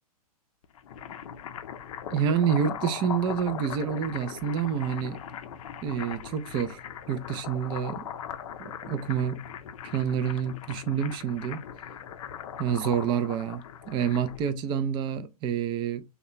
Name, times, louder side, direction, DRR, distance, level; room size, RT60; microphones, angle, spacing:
sound 1, 0.6-14.5, left 9 dB, 60° left, 0.5 m, -40 dB
voice 1, 2.1-5.2 5.8-6.8 7.1-8.0 8.6-9.4 9.9-11.6 12.6-16.0, right 8 dB, 25° right, 0.4 m, -28 dB
3.0 x 2.2 x 3.8 m
hypercardioid pair, 115°, 20 cm